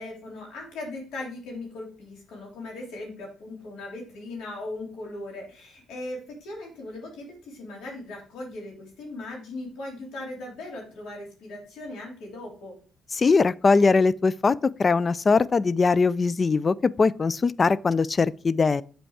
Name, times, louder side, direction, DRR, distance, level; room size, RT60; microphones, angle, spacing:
voice 1, 0.0-12.7, left 2 dB, 85° left, 3.3 m, -38 dB
voice 2, 13.1-18.8, left 4 dB, 35° left, 0.3 m, -21 dB
7.8 x 4.5 x 4.7 m
cardioid pair, 90°, 0 cm